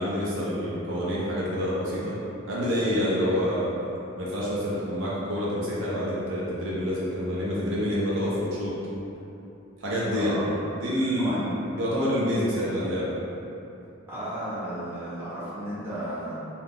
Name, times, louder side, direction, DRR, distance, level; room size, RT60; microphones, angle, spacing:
voice 1, 0.0-2.2 2.5-3.7 4.2-8.7 9.8-10.4 10.7-11.5 11.8-13.1, equal, 70° right, -7 dB, 0.6 m, -27 dB
voice 2, 10.1-10.5 11.2-11.4 14.1-16.4, right 1 dB, 10° right, -14 dB, 1.2 m, -34 dB
2.8 x 2.3 x 3.6 m, 2.9 s
head